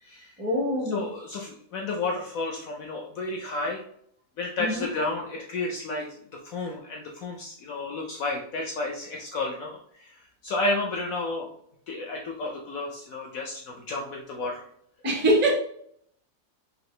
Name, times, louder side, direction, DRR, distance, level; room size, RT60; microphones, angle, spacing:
voice 1, 0.4-1.0 4.6-4.9 15.0-15.5, right 1 dB, 15° right, -2 dB, 0.3 m, -24 dB
voice 2, 0.9-3.8 4.4-10.1 10.4-11.5 11.9-14.6, left 2 dB, 75° left, 1 dB, 0.7 m, -31 dB
4.6 x 2.5 x 3.1 m, 0.66 s
omnidirectional pair, 2.0 m